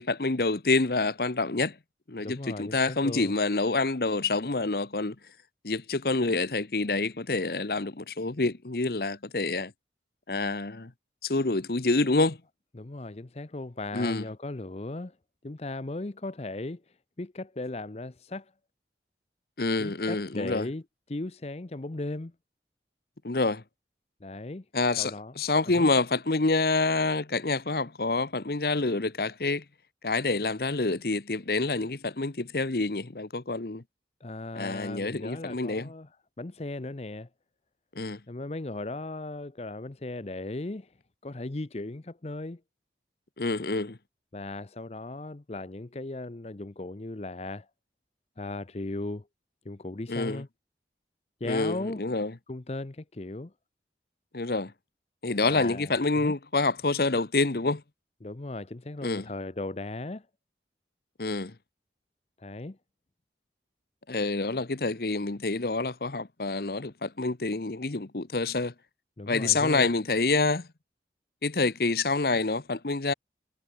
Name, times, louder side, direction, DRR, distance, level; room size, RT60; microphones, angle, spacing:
voice 1, 0.0-1.7 2.1-5.1 5.6-9.7 10.3-10.9 11.2-12.4 13.9-14.2 19.6-20.7 23.2-23.6 24.7-29.6 30.0-33.8 34.6-35.9 38.0-38.2 43.4-44.0 50.1-50.4 51.4-52.3 54.3-54.7 55.2-57.8 59.0-59.3 61.2-61.5 64.1-68.7 69.3-70.7 71.4-73.1, left 3 dB, 60° left, 1.0 m, -27 dB
voice 2, 2.2-3.3 12.7-15.2 15.4-16.8 17.2-18.5 19.8-22.3 24.2-24.6 25.0-25.3 25.7-25.9 34.2-36.1 36.4-37.3 38.3-40.9 41.2-42.6 44.3-47.7 48.4-49.3 49.6-50.5 51.4-52.0 52.5-53.5 55.5-56.3 58.2-60.3 62.4-62.8 69.2-69.9, left 2 dB, 35° left, 0.7 m, -37 dB
head